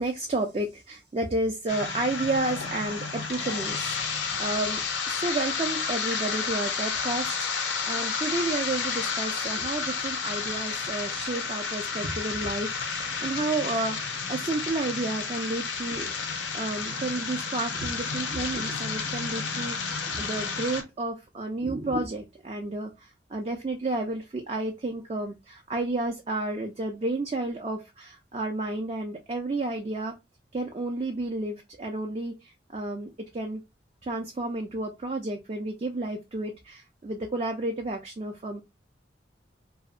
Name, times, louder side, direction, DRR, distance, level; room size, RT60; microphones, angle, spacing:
voice 1, 0.0-4.8 5.2-30.1 30.5-33.6 34.0-38.6, right 2 dB, 35° right, 0.4 m, -31 dB
sound 1, 1.7-20.8, left 5 dB, 85° left, 0.6 m, -31 dB
2.7 x 2.1 x 2.4 m
head